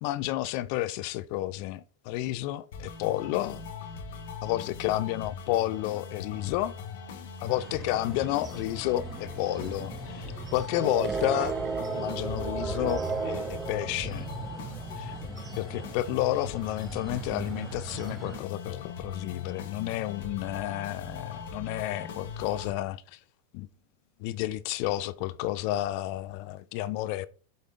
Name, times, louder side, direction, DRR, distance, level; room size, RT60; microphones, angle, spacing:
voice 1, 0.0-3.6 4.4-6.8 7.4-11.6 11.9-14.3 15.0-15.1 15.6-23.2 23.5-23.7 24.2-27.3, left 15 dB, 55° left, 0.4 m, -31 dB
sound 1, 2.7-22.7, left 5 dB, 70° left, 1.3 m, -41 dB
sound 2, 7.5-18.4, right 5 dB, 25° right, 0.5 m, -36 dB
7.8 x 3.5 x 3.7 m
hypercardioid pair, 115°, 0 cm